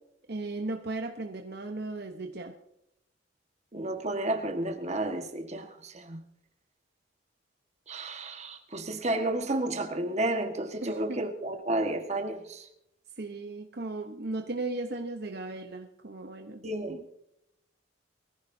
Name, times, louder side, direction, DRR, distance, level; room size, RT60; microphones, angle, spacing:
voice 1, 0.3-2.5 10.8-11.2 13.2-16.6 16.9-17.1, right 2 dB, 55° right, 1.0 m, -36 dB
voice 2, 3.7-6.2 7.9-12.6 16.6-17.0, right 1 dB, 35° right, 1.6 m, -31 dB
22.5 x 15.0 x 2.8 m
head